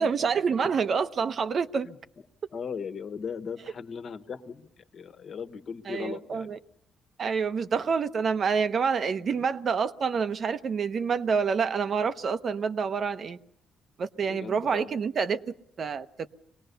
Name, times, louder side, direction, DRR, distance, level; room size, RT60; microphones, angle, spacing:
voice 1, 0.0-1.9 5.9-6.6 7.2-13.4 14.0-16.3, right 6 dB, 50° right, 0.8 m, -27 dB
voice 2, 2.5-6.5 7.8-7.9 14.2-14.9, left 6 dB, 55° left, 1.4 m, -38 dB
24.0 x 18.5 x 6.8 m
cardioid pair, 90°, 0 cm